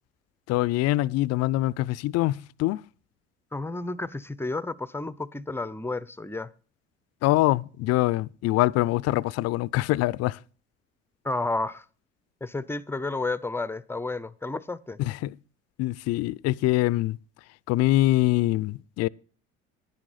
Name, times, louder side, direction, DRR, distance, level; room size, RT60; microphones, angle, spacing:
voice 1, 0.5-2.8 7.2-10.4 15.0-15.4 15.8-17.2 17.7-19.1, left 17 dB, 55° left, 0.5 m, -24 dB
voice 2, 3.5-6.5 11.2-11.8 12.4-15.0, left 2 dB, 5° left, 0.6 m, -31 dB
10.5 x 10.5 x 4.1 m
hypercardioid pair, 60°, 31 cm